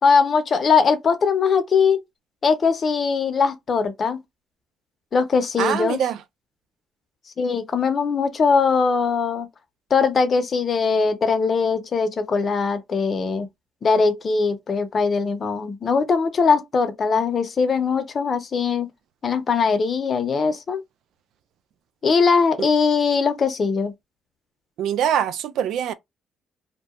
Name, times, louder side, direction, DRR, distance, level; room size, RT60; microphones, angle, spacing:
voice 1, 0.0-2.0 2.4-4.2 5.1-6.0 7.4-9.5 9.9-13.5 13.8-18.9 19.2-20.8 22.0-23.9, left 5 dB, 45° left, 0.7 m, -20 dB
voice 2, 5.6-6.2 22.6-22.7 24.8-25.9, right 9 dB, 80° right, 0.4 m, -23 dB
2.7 x 2.2 x 2.3 m
cardioid pair, 90°, 0 cm